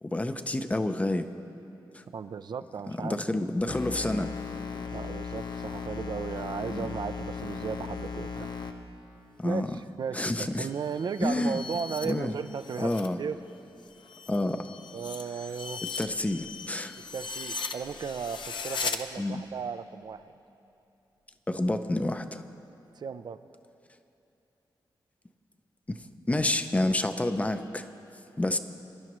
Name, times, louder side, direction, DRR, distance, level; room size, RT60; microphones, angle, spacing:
voice 1, 0.0-1.3 1.9-2.0 2.9-4.3 6.7-6.9 9.4-9.8 10.1-10.7 11.2-11.6 12.0-12.4 12.8-13.2 14.3-14.7 16.0-17.0 19.2-19.4 21.5-22.4 25.9-26.0 26.3-27.8 28.4-28.6, left 1 dB, 15° left, 9 dB, 0.5 m, -29 dB
voice 2, 2.1-3.2 4.9-8.5 9.4-13.4 14.9-15.8 17.1-20.3 23.0-23.5, right 6 dB, 60° right, 11 dB, 0.4 m, -35 dB
sound 1, 3.7-8.7, left 5 dB, 60° left, 1.1 m, -37 dB
sound 2, 10.7-13.1 13.5-19.0, left 5 dB, 75° left, 0.6 m, -39 dB
24.0 x 11.5 x 3.1 m, 2.8 s
wide cardioid pair, 105°, 8 cm